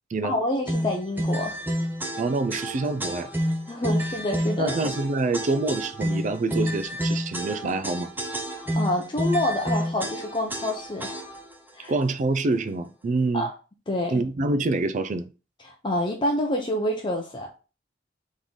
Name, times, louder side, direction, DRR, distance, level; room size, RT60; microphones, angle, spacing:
voice 1, 0.2-1.6 3.7-4.7 8.5-11.2 11.8-11.9 13.3-13.5 13.9-14.2 15.6-17.6, left 1 dB, 25° left, 0.6 m, -27 dB
sound 1, 0.7-11.5, equal, 10° right, 0.7 m, -29 dB
voice 2, 2.2-3.3 4.6-8.1 11.9-13.5 14.1-15.3, right 3 dB, 45° right, 0.4 m, -26 dB
3.7 x 3.1 x 3.9 m
head